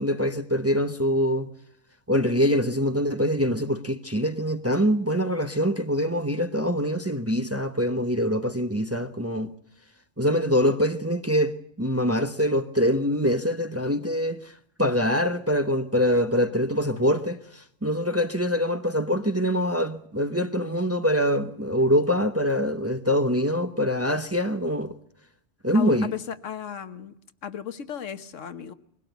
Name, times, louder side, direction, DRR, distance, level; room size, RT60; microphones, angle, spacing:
voice 1, 0.0-1.5 2.1-9.5 10.2-24.9 25.6-26.1, equal, 15° right, 0.8 m, -24 dB
voice 2, 25.7-27.1 27.4-28.7, left 8 dB, 85° left, 1.5 m, -34 dB
21.5 x 17.0 x 8.0 m
omnidirectional pair, 1.2 m